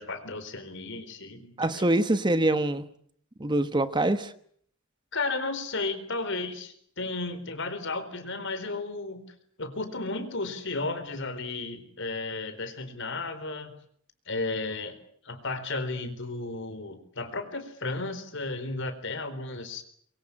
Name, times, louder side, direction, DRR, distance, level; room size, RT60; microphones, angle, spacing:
voice 1, 0.0-1.9 5.1-9.3 9.6-13.7 14.3-15.0 15.2-19.8, left 3 dB, 60° left, 10 dB, 4.4 m, -34 dB
voice 2, 1.6-2.9 3.4-4.3, right 1 dB, 20° right, 12 dB, 1.1 m, -24 dB
24.0 x 23.5 x 8.8 m, 0.62 s
head